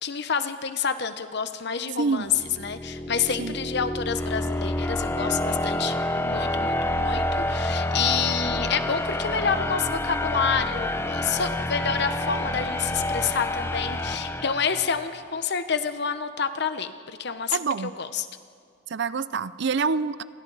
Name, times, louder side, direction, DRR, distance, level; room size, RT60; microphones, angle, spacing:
voice 1, 0.0-2.3 2.6-16.9 17.2-18.3, left 6 dB, 60° left, 10 dB, 1.0 m, -28 dB
sound 1, 2.3-15.2, left 1 dB, 15° left, 0.7 m, -28 dB
voice 2, 17.5-17.9 18.9-20.2, right 4 dB, 60° right, 16 dB, 0.5 m, -26 dB
29.5 x 23.0 x 4.1 m, 2.4 s
head